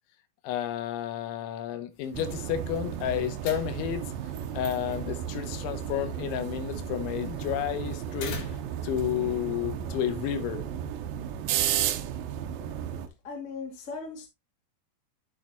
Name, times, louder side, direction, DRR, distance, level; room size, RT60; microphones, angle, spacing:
voice 1, 0.4-4.0 4.5-8.4 8.8-10.7, left 10 dB, 85° left, 3.3 m, -31 dB
sound 1, 1.9-8.9, left 3 dB, 55° left, 2.8 m, -47 dB
sound 2, 2.1-13.1, right 10 dB, 85° right, 2.1 m, -33 dB
voice 2, 13.2-14.3, left 4 dB, 30° left, 1.7 m, -38 dB
9.2 x 6.9 x 2.9 m
omnidirectional pair, 5.2 m